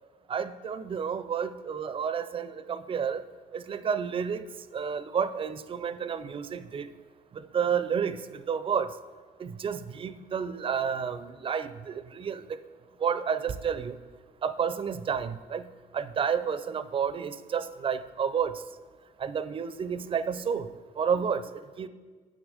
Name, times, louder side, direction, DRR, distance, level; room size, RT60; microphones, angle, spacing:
voice 1, 0.3-3.2 3.5-4.5 4.7-6.9 7.3-8.9 9.4-12.4 13.0-14.0 14.4-15.6 15.9-18.6 19.2-20.7 21.0-21.4 21.8-21.9, right 7 dB, 30° right, 13 dB, 0.4 m, -30 dB
8.4 x 6.3 x 4.9 m, 1.5 s
cardioid pair, 110°, 17 cm